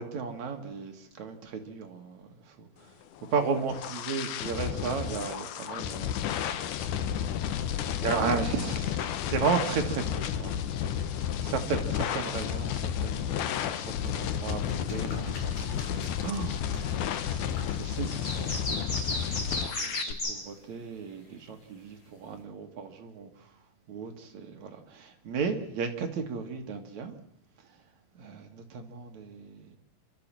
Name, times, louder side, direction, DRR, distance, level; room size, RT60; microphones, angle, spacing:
voice 1, 0.0-2.9 3.3-6.5 8.0-11.2 11.4-16.9 17.3-23.5 23.9-27.2 28.1-29.8, right 5 dB, 55° right, 4 dB, 2.7 m, -35 dB
sound 1, 3.2-20.1, left 9 dB, 70° left, 2.2 m, -32 dB
sound 2, 13.1-20.6, left 3 dB, 50° left, 4.3 m, -50 dB
sound 3, 18.1-20.4, left 1 dB, 20° left, 3.6 m, -33 dB
28.0 x 12.5 x 7.5 m, 0.78 s
omnidirectional pair, 4.3 m